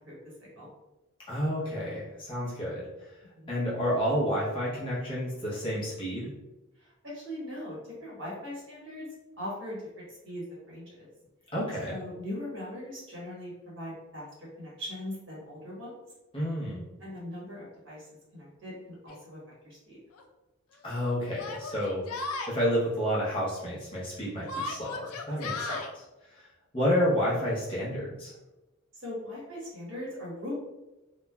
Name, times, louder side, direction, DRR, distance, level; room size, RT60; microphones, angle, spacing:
voice 1, 1.3-2.9 3.5-6.3 11.5-11.9 16.3-16.8 20.8-22.0 22.5-25.7 26.3-26.5 26.7-28.3, equal, 25° left, -7 dB, 0.7 m, -30 dB
voice 2, 6.8-9.1 9.4-11.1 11.9-15.9 17.0-18.1 18.3-19.4 19.6-20.0 25.5-25.8 29.0-30.5, left 1 dB, 65° right, -5 dB, 1.1 m, -40 dB
Yell, 19.1-19.2 20.1-20.2 21.4-22.5 24.5-25.9, left 3 dB, 90° left, 0.4 m, -36 dB
3.0 x 2.1 x 2.2 m, 1.0 s
head